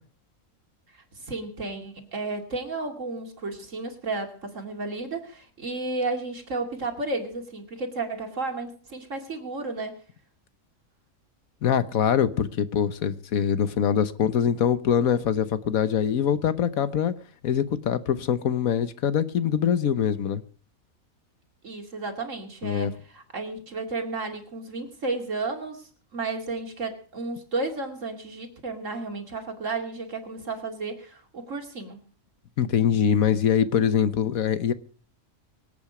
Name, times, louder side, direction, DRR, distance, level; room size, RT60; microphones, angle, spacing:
voice 1, 0.9-10.0 21.6-32.0, right 3 dB, 65° right, 2.8 m, -33 dB
voice 2, 11.6-17.1 17.4-20.4 22.6-22.9 32.6-34.7, left 8 dB, 85° left, 1.4 m, -23 dB
24.0 x 8.7 x 4.9 m
omnidirectional pair, 1.4 m